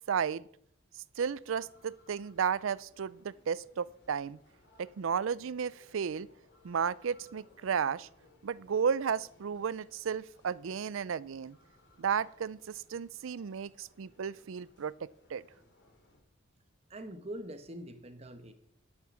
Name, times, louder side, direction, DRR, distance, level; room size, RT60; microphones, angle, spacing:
voice 1, 0.1-0.5 1.2-4.4 4.8-6.3 6.6-8.1 8.4-11.6 12.0-15.4, right 7 dB, 75° right, 0.4 m, -33 dB
sound 1, 1.2-16.2, left 1 dB, 55° left, 3.0 m, -64 dB
voice 2, 16.9-18.5, right 1 dB, 30° right, 1.1 m, -43 dB
12.0 x 7.2 x 6.2 m
head